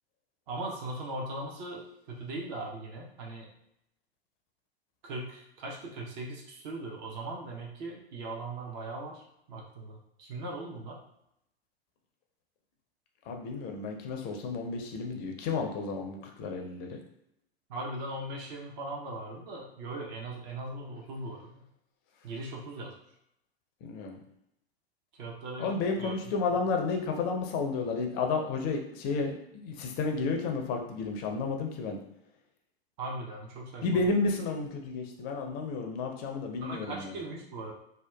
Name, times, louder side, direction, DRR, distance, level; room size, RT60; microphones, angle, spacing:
voice 1, 0.5-3.5 5.0-11.0 17.7-21.6 22.2-22.9 25.2-26.1 33.0-34.0 36.6-37.7, right 2 dB, 45° right, -1 dB, 0.7 m, -39 dB
voice 2, 13.3-17.0 23.8-24.2 25.6-32.0 33.8-37.2, left 4 dB, 30° left, 3 dB, 0.4 m, -32 dB
2.7 x 2.2 x 2.2 m, 0.79 s
figure-of-eight pair, 95°, 31 cm